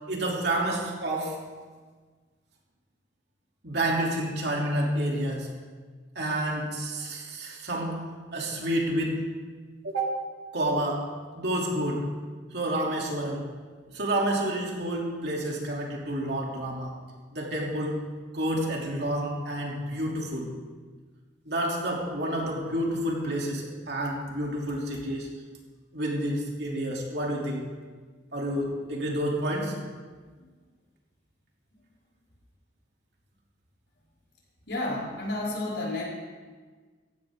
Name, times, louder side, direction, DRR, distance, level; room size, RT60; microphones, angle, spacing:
voice 1, 0.1-1.4 3.6-5.5 6.1-9.2 9.8-10.2 10.5-12.1 12.5-13.5 13.9-16.9 17.3-18.1 18.3-20.5 21.5-25.3 25.9-27.6 28.3-29.8, right 1 dB, 65° right, -2 dB, 3.0 m, -29 dB
voice 2, 34.7-36.0, left 2 dB, 75° left, -6 dB, 5.3 m, -31 dB
17.5 x 14.5 x 3.7 m, 1.4 s
head